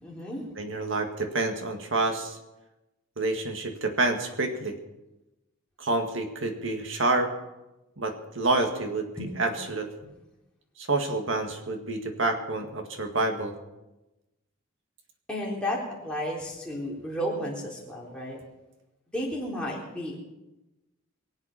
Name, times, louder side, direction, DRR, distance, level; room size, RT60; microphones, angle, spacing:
voice 1, 0.0-0.4 9.2-9.3 15.3-18.4 19.1-20.2, equal, 5° left, -5 dB, 3.6 m, -33 dB
voice 2, 0.6-2.4 3.2-4.8 5.8-7.3 8.0-9.1 9.4-9.9 10.8-13.5, right 2 dB, 65° right, 5 dB, 2.0 m, -28 dB
23.0 x 8.1 x 5.8 m, 1.0 s
head